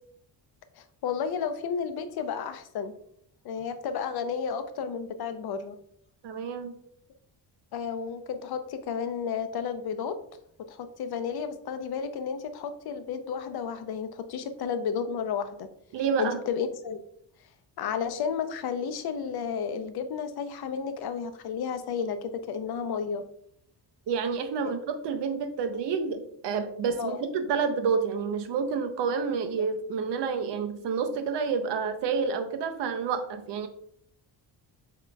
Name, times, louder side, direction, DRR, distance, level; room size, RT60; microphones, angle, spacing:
voice 1, 0.8-2.9 3.4-5.8 7.7-10.2 10.7-15.7 16.2-17.0 17.8-23.2 24.6-24.7 27.0-27.2, left 6 dB, 60° left, 10 dB, 0.6 m, -32 dB
voice 2, 6.2-6.7 15.9-16.4 24.1-33.7, right 5 dB, 75° right, 8 dB, 0.7 m, -29 dB
7.4 x 2.9 x 2.3 m, 0.69 s
cardioid pair, 125°, 42 cm